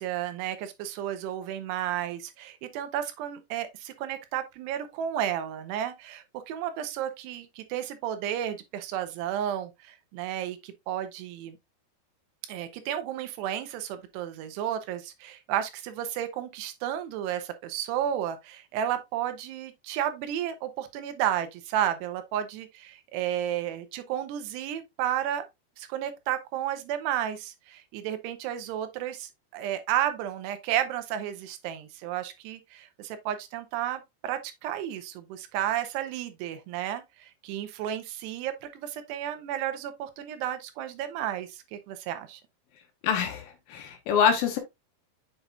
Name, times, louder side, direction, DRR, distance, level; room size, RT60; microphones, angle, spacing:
voice 1, 0.0-11.6 12.5-25.5 25.8-42.4, right 11 dB, 90° right, 3.0 m, -32 dB
voice 2, 43.0-44.6, left 7 dB, 70° left, 2.4 m, -25 dB
7.5 x 5.5 x 2.4 m
omnidirectional pair, 4.8 m